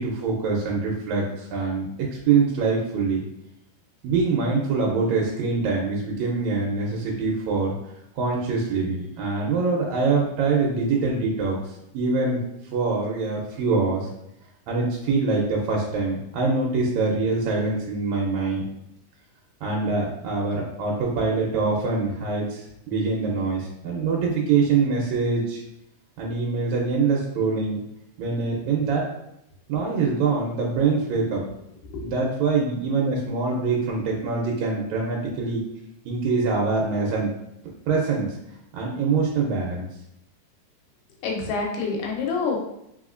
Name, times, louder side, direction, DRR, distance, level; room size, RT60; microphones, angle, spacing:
voice 1, 0.0-1.9 2.3-3.2 4.0-7.7 8.1-11.6 11.9-12.4 12.7-14.1 14.7-18.6 19.6-25.6 26.2-27.8 28.2-29.0 29.7-31.4 32.0-35.6 36.1-37.3 37.9-38.4 38.7-39.9, right 4 dB, 75° right, -2 dB, 1.8 m, -24 dB
voice 2, 41.2-42.6, left 4 dB, 85° left, 0 dB, 2.4 m, -27 dB
4.2 x 3.9 x 2.5 m, 0.81 s
omnidirectional pair, 3.7 m